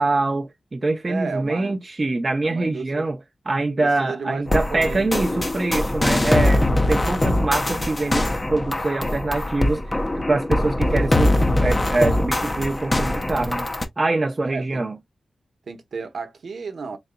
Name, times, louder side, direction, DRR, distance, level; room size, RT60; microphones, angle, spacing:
voice 1, 0.0-3.2 3.5-13.7 14.0-14.9, right 2 dB, 30° right, 0.6 m, -24 dB
voice 2, 1.0-1.8 2.4-3.1 3.8-5.5 14.4-14.9 15.7-17.0, right 4 dB, 65° right, 0.9 m, -33 dB
sound 1, 4.5-13.9, left 1 dB, 20° left, 0.6 m, -22 dB
3.9 x 3.8 x 2.2 m
wide cardioid pair, 125°, 0 cm